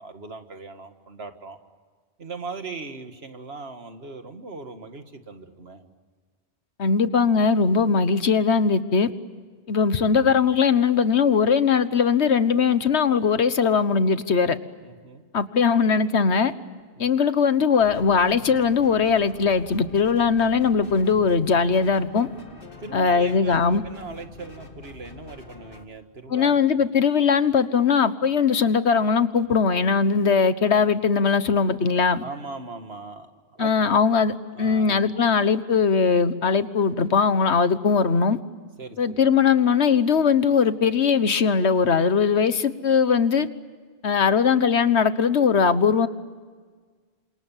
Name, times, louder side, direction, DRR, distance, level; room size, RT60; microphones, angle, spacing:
voice 1, 0.0-1.6 2.2-5.8 14.8-15.3 17.0-17.3 22.8-26.5 32.2-33.7 34.5-35.1 38.8-39.2, right 3 dB, 70° right, 2.1 m, -39 dB
voice 2, 6.8-9.1 9.7-14.6 15.3-16.5 17.0-22.3 22.9-23.8 26.3-32.2 33.6-38.4 39.0-43.5 44.0-46.1, left 5 dB, 90° left, 1.5 m, -20 dB
sound 1, 17.8-25.8, left 3 dB, 55° left, 2.3 m, -45 dB
29.5 x 27.0 x 7.3 m
omnidirectional pair, 1.1 m